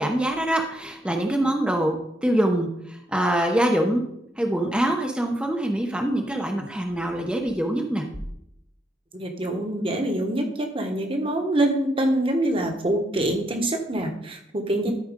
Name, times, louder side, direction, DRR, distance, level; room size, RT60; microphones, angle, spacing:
voice 1, 0.0-4.0 4.4-8.0 14.8-14.9, right 1 dB, 5° right, 3 dB, 0.8 m, -24 dB
voice 2, 9.1-14.9, right 1 dB, 30° right, 4 dB, 1.3 m, -25 dB
13.0 x 4.3 x 5.1 m, 0.75 s
head